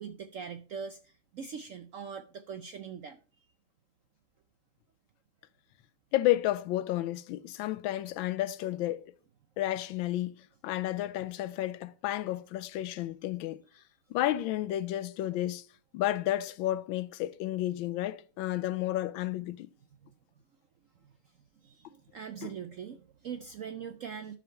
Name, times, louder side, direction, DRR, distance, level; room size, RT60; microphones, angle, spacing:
voice 1, 0.0-3.2 21.6-24.4, right 7 dB, 85° right, 0.7 m, -42 dB
voice 2, 6.1-9.1 9.6-13.6 14.1-15.7 15.9-19.7 22.4-22.5, left 14 dB, 90° left, 1.4 m, -31 dB
12.0 x 5.1 x 4.4 m
omnidirectional pair, 2.1 m